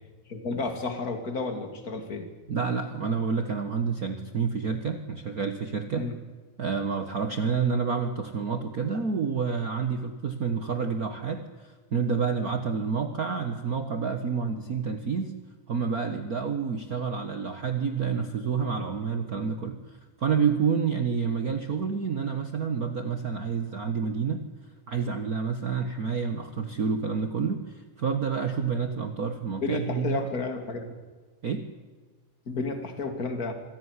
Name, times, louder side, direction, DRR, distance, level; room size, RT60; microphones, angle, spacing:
voice 1, 0.3-2.3 5.9-6.1 29.6-31.0 32.5-33.5, left 3 dB, 30° left, 6 dB, 2.9 m, -31 dB
voice 2, 2.5-6.1 6.6-15.3 15.7-19.8 20.2-24.4 24.9-30.2 31.4-31.7, right 5 dB, 65° right, 7 dB, 0.9 m, -29 dB
25.5 x 16.5 x 9.8 m, 1.3 s
omnidirectional pair, 3.7 m